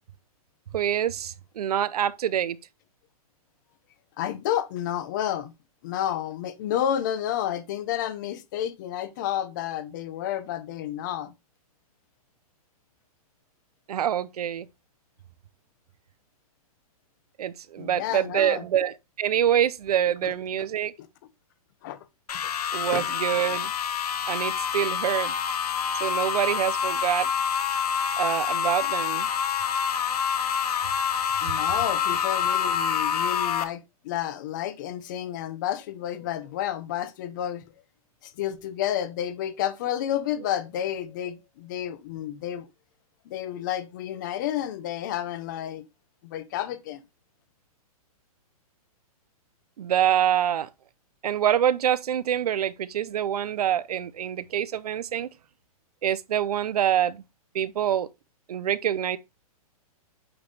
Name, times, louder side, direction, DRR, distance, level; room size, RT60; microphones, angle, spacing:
voice 1, 0.7-2.6 13.9-14.7 17.4-20.9 22.7-23.7 24.3-25.3 26.0-27.3 28.2-29.3 49.8-50.7 51.2-55.3 56.0-57.2 57.5-58.1 58.5-59.2, right 10 dB, 80° right, 0.7 m, -25 dB
voice 2, 4.2-5.5 5.8-11.3 17.8-18.7 20.2-20.3 21.8-22.0 22.4-22.5 22.9-23.0 31.4-37.6 38.2-42.7 43.3-45.8 46.2-47.0, left 11 dB, 30° left, 0.8 m, -30 dB
sound 1, 22.3-33.6, left 7 dB, 80° left, 1.1 m, -27 dB
8.8 x 3.4 x 4.1 m
hypercardioid pair, 170°, 19 cm